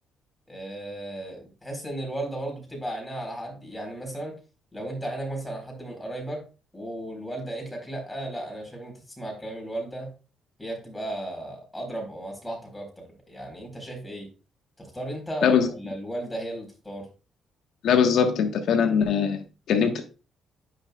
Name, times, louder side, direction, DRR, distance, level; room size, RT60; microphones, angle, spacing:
voice 1, 0.5-4.4 4.7-6.4 6.7-10.1 10.6-14.3 14.8-17.1, right 1 dB, 10° left, 0 dB, 4.2 m, -35 dB
voice 2, 17.8-20.0, left 7 dB, 75° left, 6 dB, 1.3 m, -21 dB
9.8 x 5.7 x 2.3 m, 0.33 s
cardioid pair, 90°, 0 cm